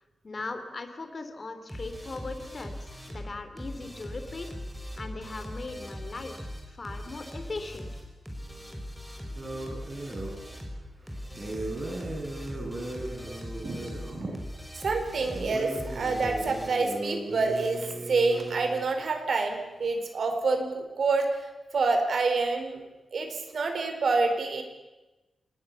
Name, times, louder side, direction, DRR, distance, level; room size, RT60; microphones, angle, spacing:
voice 1, 0.2-4.5 5.0-7.9, left 3 dB, 35° left, 7 dB, 3.1 m, -39 dB
sound 1, 1.7-16.7, equal, 5° right, 5.6 m, -40 dB
sound 2, 9.4-10.4 11.3-14.3 15.1-18.9, right 2 dB, 30° right, 6.5 m, -37 dB
voice 2, 14.8-21.4 21.7-22.8 23.1-24.6, right 3 dB, 60° right, 6 dB, 4.6 m, -27 dB
27.5 x 20.5 x 7.1 m, 1.1 s
wide cardioid pair, 135°, 0 cm